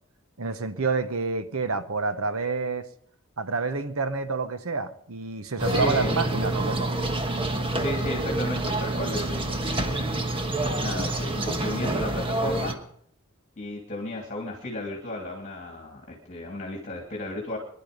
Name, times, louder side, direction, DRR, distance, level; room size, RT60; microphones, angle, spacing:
voice 1, 0.4-2.9 3.4-6.9, right 4 dB, 70° right, 1.0 m, -28 dB
voice 2, 5.6-6.1 7.7-10.2 10.8-12.8 13.6-17.6, left 2 dB, 35° left, 2.7 m, -34 dB
sound 1, 5.6-12.7, right 2 dB, 25° right, 1.3 m, -27 dB
22.5 x 11.5 x 5.3 m
head